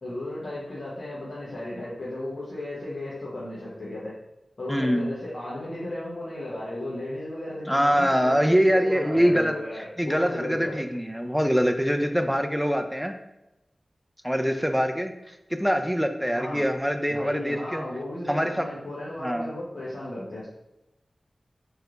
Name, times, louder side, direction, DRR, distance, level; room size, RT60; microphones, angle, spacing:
voice 1, 0.0-4.1 4.6-10.8 16.3-16.6 17.1-20.5, left 1 dB, 65° left, -9 dB, 0.8 m, -35 dB
voice 2, 4.7-5.1 7.7-13.2 14.2-17.8 18.3-18.7 19.2-19.5, equal, ahead, 6 dB, 0.3 m, -24 dB
3.2 x 2.4 x 2.9 m, 0.93 s
cardioid pair, 45°, 0 cm